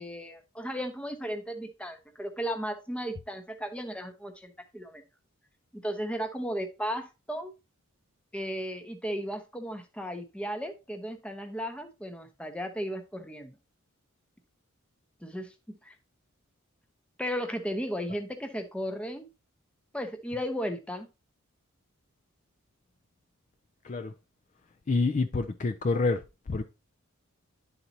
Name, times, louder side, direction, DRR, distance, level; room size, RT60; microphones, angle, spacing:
voice 1, 0.0-5.0 5.7-7.5 8.3-13.6 15.2-16.0 17.2-19.3 19.9-21.1, equal, 5° left, 0.7 m, -35 dB
voice 2, 24.9-26.2 26.5-26.6, left 3 dB, 35° left, 0.4 m, -27 dB
11.0 x 4.0 x 2.8 m
head